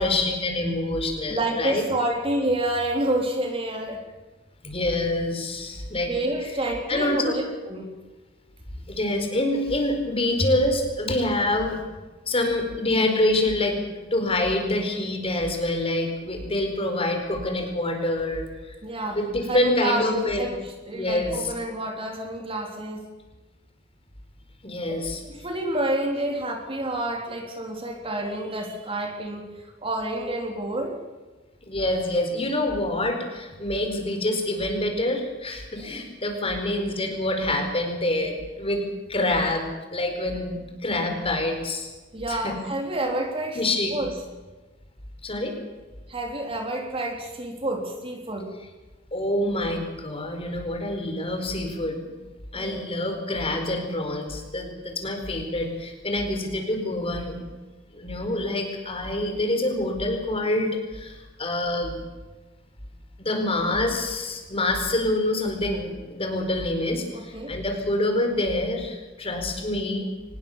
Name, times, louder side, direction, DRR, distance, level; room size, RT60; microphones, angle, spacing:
voice 1, 0.0-1.8 4.6-6.1 6.9-7.3 8.9-11.8 12.3-13.8 14.1-18.7 19.1-20.5 20.9-21.5 24.6-25.2 31.7-38.8 39.1-41.9 42.3-42.5 43.5-44.0 45.2-45.6 49.1-52.1 52.5-57.4 57.9-62.0 63.2-70.1, left 1 dB, 30° left, 5 dB, 4.6 m, -26 dB
voice 2, 1.3-4.0 6.0-7.9 18.8-19.2 19.5-23.1 25.4-31.0 42.1-43.6 43.9-44.1 46.1-48.5 52.5-52.9 67.1-67.5, right 1 dB, 30° right, 3 dB, 3.4 m, -29 dB
24.5 x 20.0 x 7.2 m, 1.2 s
head